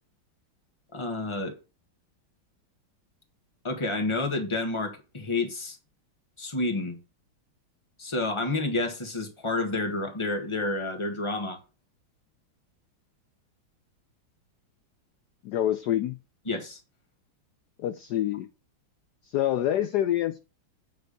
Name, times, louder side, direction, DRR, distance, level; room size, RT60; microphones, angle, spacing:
voice 1, 0.9-1.6 3.6-5.8 6.4-7.0 8.0-11.6 16.5-16.8, left 2 dB, 15° left, 1.4 m, -29 dB
voice 2, 15.4-16.2 17.8-18.5 19.2-20.4, left 12 dB, 75° left, 0.9 m, -26 dB
9.2 x 3.5 x 6.6 m
omnidirectional pair, 2.3 m